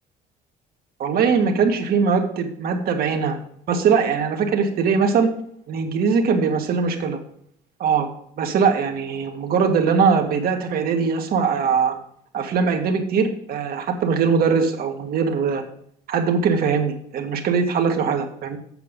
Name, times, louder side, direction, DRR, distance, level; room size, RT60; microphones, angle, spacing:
voice 1, 1.0-3.4 3.7-5.3 5.7-7.2 7.8-8.1 8.4-11.9 12.3-15.6 16.1-18.6, right 5 dB, 60° right, 4 dB, 1.6 m, -21 dB
8.0 x 6.8 x 5.2 m, 0.68 s
cardioid pair, 110°, 17 cm